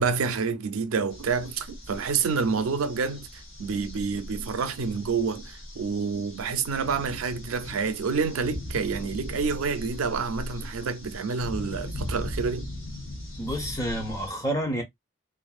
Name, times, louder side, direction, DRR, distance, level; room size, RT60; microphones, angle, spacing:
voice 1, 0.0-3.3 3.6-12.7, right 5 dB, 85° right, 0.4 m, -28 dB
sound 1, 1.1-14.3, left 1 dB, 65° left, 1.0 m, -39 dB
voice 2, 13.4-14.8, equal, 15° left, 0.7 m, -29 dB
2.5 x 2.4 x 2.3 m
head